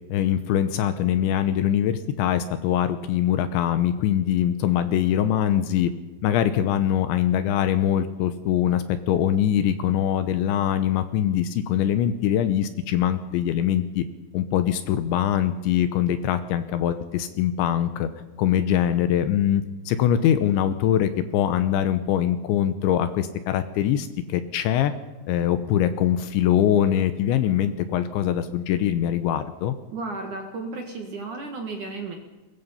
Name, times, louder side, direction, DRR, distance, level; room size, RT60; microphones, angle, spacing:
voice 1, 0.1-5.9 6.2-14.0 14.3-18.1 18.4-24.9 25.3-29.8, left 10 dB, 75° left, 11 dB, 3.0 m, -23 dB
voice 2, 29.9-32.2, right 3 dB, 55° right, 3 dB, 2.4 m, -33 dB
22.0 x 22.0 x 5.7 m, 1.2 s
omnidirectional pair, 5.8 m